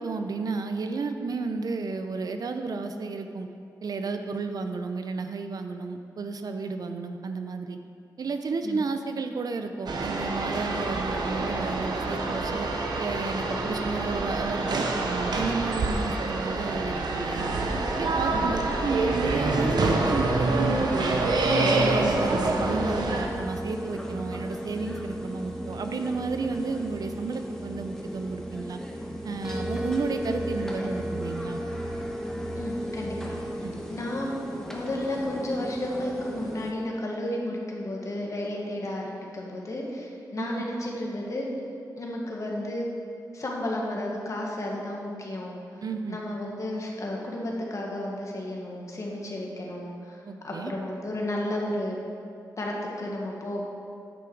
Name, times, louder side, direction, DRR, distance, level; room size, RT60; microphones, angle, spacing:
voice 1, 0.0-3.5 3.8-7.8 8.2-12.7 13.0-17.5 18.0-21.3 21.6-28.8 29.2-31.6 33.6-33.8 40.4-40.6 45.8-46.2 50.3-50.7, right 4 dB, 65° right, 7 dB, 0.6 m, -32 dB
sound 1, 9.9-23.3, right 2 dB, 80° right, 0.9 m, -26 dB
sound 2, 20.4-36.7, equal, 5° left, 1.1 m, -40 dB
sound 3, 22.6-33.7, right 1 dB, 10° right, 0.8 m, -36 dB
voice 2, 32.5-33.4 33.9-34.4 34.7-41.5 42.0-42.9 43.3-45.6 46.1-50.2 50.4-52.0 52.6-53.6, left 1 dB, 50° left, -2 dB, 1.6 m, -32 dB
10.0 x 5.9 x 4.7 m, 2.5 s
wide cardioid pair, 100°, 7 cm